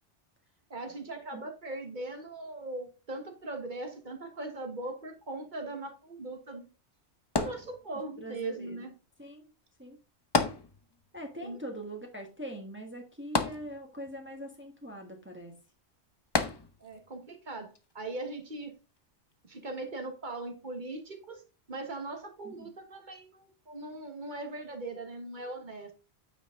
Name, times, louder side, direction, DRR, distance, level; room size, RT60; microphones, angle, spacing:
voice 1, 0.7-6.7 7.3-8.9 11.4-11.6 16.8-18.7 19.5-21.4 21.7-25.9, right 2 dB, 40° right, 1.5 m, -40 dB
sound 1, 7.4-8.3 10.3-11.2 11.5-11.6 13.4-14.2 16.3-17.1 17.8-17.9, left 3 dB, 25° left, 0.7 m, -30 dB
voice 2, 8.2-8.9 9.2-9.5 9.8-10.0 11.1-15.5 22.4-22.7, right 1 dB, 10° right, 1.4 m, -42 dB
9.1 x 5.2 x 3.7 m
omnidirectional pair, 1.2 m